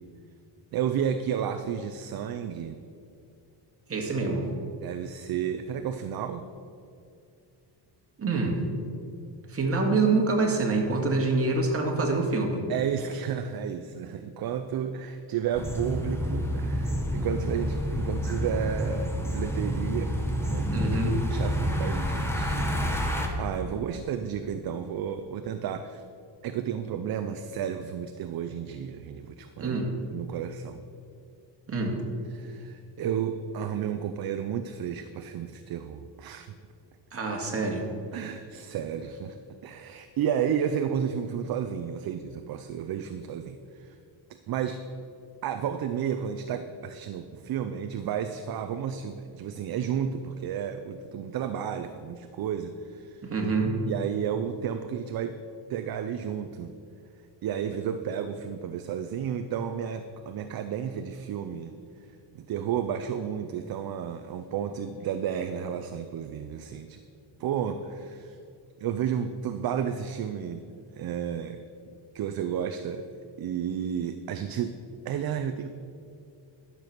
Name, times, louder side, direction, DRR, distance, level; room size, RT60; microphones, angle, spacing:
voice 1, 0.7-2.8 4.8-6.5 12.7-20.9 21.3-26.0 26.4-29.8 30.1-30.8 32.3-36.5 38.1-44.0 44.5-44.8 45.4-53.3 53.9-55.4 55.7-56.7 57.4-61.7 62.3-67.0 67.4-68.4 68.8-71.6 72.1-73.1 73.4-74.8 75.0-75.7, right 8 dB, 55° right, 9 dB, 0.6 m, -32 dB
voice 2, 3.9-4.5 8.2-8.6 9.5-12.6 20.7-21.2 29.6-29.9 31.7-32.0 37.1-37.9 53.2-53.8, right 3 dB, 30° right, 0 dB, 2.1 m, -26 dB
sound 1, 15.6-23.3, equal, 5° left, 1.3 m, -29 dB
12.0 x 7.0 x 6.0 m, 2.5 s
cardioid pair, 115°, 45 cm